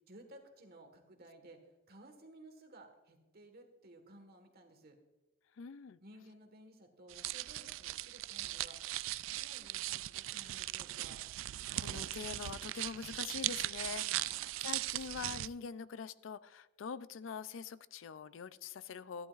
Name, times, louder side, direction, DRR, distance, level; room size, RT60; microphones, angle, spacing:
voice 1, 0.1-1.6 1.9-5.0 6.0-8.8 9.1-11.2 14.1-14.4, right 1 dB, 50° right, 5 dB, 1.5 m, -57 dB
voice 2, 5.6-6.0 10.4-10.7 11.8-14.4 14.6-19.3, left 6 dB, 70° left, 16 dB, 0.4 m, -44 dB
sound 1, 7.1-15.5, right 15 dB, 75° right, 0.3 m, -39 dB
14.5 x 11.0 x 2.5 m, 1.1 s
head